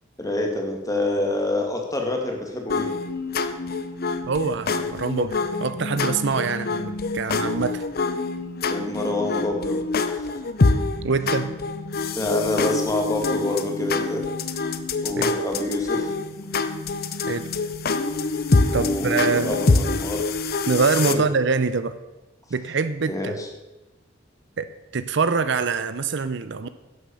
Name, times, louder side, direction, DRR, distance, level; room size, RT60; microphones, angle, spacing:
voice 1, 0.2-2.9 8.7-9.8 10.1-10.4 12.2-14.2 15.0-16.1 18.7-20.2 21.1-21.2 23.1-23.5, left 2 dB, 20° left, 2 dB, 1.9 m, -26 dB
sound 1, 2.7-21.1, left 3 dB, 55° left, 0.7 m, -26 dB
voice 2, 4.3-7.8 11.0-11.5 15.2-15.3 17.3-17.5 18.7-19.6 20.7-22.0 22.5-23.4 24.6-24.7 24.9-26.7, right 4 dB, 65° right, 12 dB, 0.6 m, -24 dB
11.0 x 7.6 x 6.9 m, 1.0 s
head